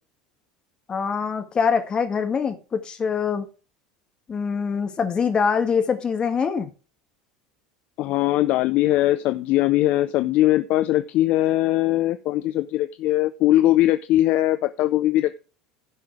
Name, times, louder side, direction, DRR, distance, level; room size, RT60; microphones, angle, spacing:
voice 1, 0.9-3.5 4.3-6.7, left 6 dB, 25° left, 1.8 m, -24 dB
voice 2, 8.0-15.4, left 15 dB, 45° left, 0.5 m, -20 dB
16.0 x 5.7 x 3.4 m
figure-of-eight pair, 70°, 3 cm